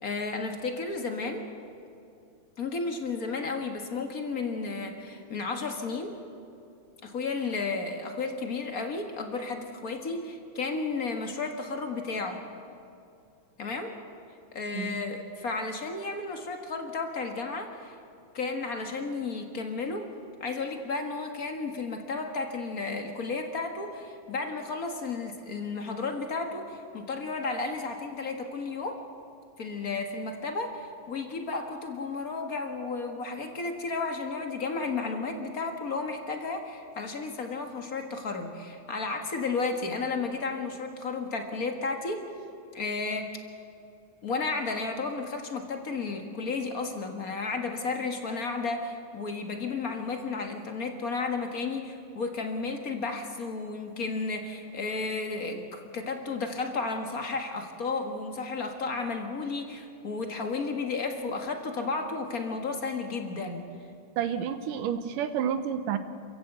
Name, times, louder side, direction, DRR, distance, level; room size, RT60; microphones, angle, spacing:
voice 1, 0.0-1.4 2.6-6.1 7.0-12.4 13.6-13.9 14.5-18.0 18.3-20.1 20.4-29.0 29.6-42.3 42.7-43.3 44.2-63.6, left 4 dB, 35° left, 4 dB, 1.6 m, -33 dB
voice 2, 64.2-66.0, right 8 dB, 85° right, 10 dB, 2.7 m, -30 dB
27.0 x 15.5 x 8.0 m, 2.6 s
omnidirectional pair, 3.6 m